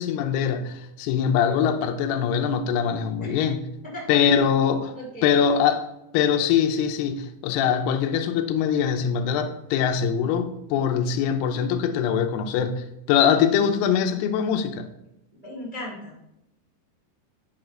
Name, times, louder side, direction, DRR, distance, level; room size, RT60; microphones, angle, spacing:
voice 1, 0.0-3.6 4.1-4.9 5.2-5.9 6.1-14.9, left 7 dB, 80° left, 2.5 m, -23 dB
voice 2, 3.9-4.6 4.9-5.4 15.4-16.1, left 1 dB, 40° right, 0.5 m, -37 dB
10.5 x 3.9 x 5.9 m
omnidirectional pair, 5.2 m